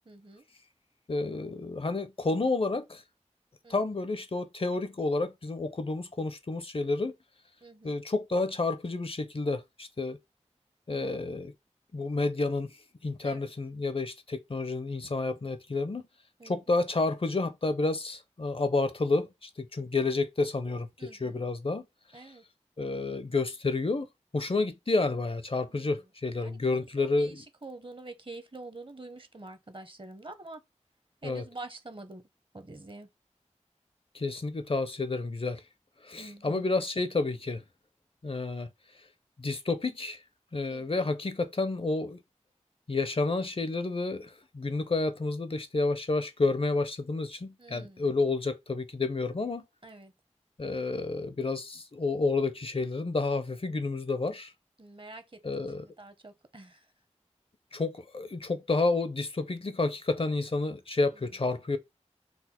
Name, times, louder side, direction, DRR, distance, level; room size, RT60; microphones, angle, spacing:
voice 1, 0.1-0.4 3.6-3.9 7.6-8.0 10.9-11.3 13.2-13.5 16.4-16.6 21.0-21.4 22.1-22.4 25.7-25.9 26.4-26.6 27.0-30.6 31.2-32.2 32.5-33.1 36.2-36.7 40.7-41.1 47.6-48.1 49.8-50.1 54.8-56.9 57.7-57.8, right 2 dB, 45° right, 0.8 m, -47 dB
voice 2, 1.1-3.0 3.7-7.1 7.8-10.2 10.9-11.5 11.9-12.7 13.0-16.0 16.4-21.8 22.1-22.3 22.8-24.1 24.3-27.4 31.2-31.4 34.1-35.6 36.0-37.6 38.2-38.7 39.4-40.2 40.5-42.2 42.9-49.6 50.6-54.5 55.4-55.9 57.7-61.8, left 3 dB, 50° left, 0.5 m, -30 dB
4.1 x 2.1 x 4.2 m
wide cardioid pair, 45°, 12 cm